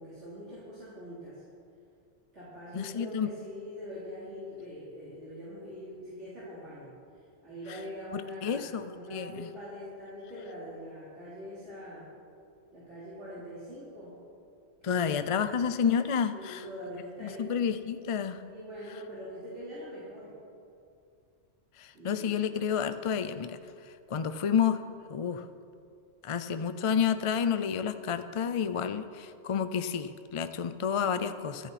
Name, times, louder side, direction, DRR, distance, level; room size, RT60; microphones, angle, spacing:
voice 1, 0.0-1.4 2.3-12.1 12.7-14.1 14.8-15.6 16.3-17.5 18.5-20.3 21.9-22.3, equal, 85° right, -11 dB, 4.0 m, -43 dB
voice 2, 2.7-3.3 7.7-7.8 8.1-9.5 14.8-16.6 17.2-18.4 21.8-24.8 25.1-25.5 26.2-31.7, left 7 dB, 45° left, 11 dB, 0.4 m, -30 dB
24.5 x 9.3 x 4.2 m, 2.4 s
omnidirectional pair, 1.2 m